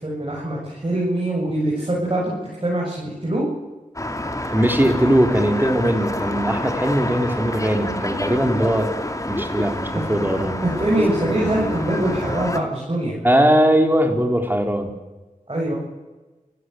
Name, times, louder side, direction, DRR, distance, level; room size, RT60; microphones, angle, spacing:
voice 1, 0.0-2.3 2.6-3.5 10.6-13.1 15.5-15.7, right 1 dB, 35° right, -4 dB, 7.5 m, -23 dB
sound 1, 4.0-12.6, left 1 dB, 20° left, 2.6 m, -27 dB
voice 2, 4.5-8.9 9.3-10.6 13.2-14.9, equal, 15° right, 5 dB, 4.3 m, -20 dB
29.0 x 16.5 x 8.1 m, 1.2 s
wide cardioid pair, 60°, 14 cm